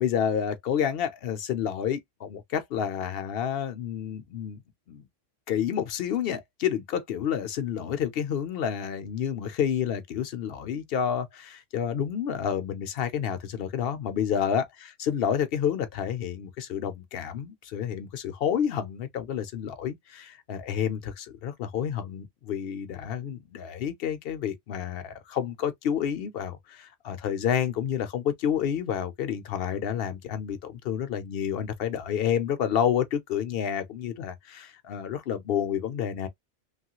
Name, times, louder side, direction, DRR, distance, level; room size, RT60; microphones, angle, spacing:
voice 1, 0.0-4.6 4.9-5.1 5.5-36.3, left 8 dB, 60° left, 0.8 m, -29 dB
3.0 x 2.3 x 2.9 m
omnidirectional pair, 1.2 m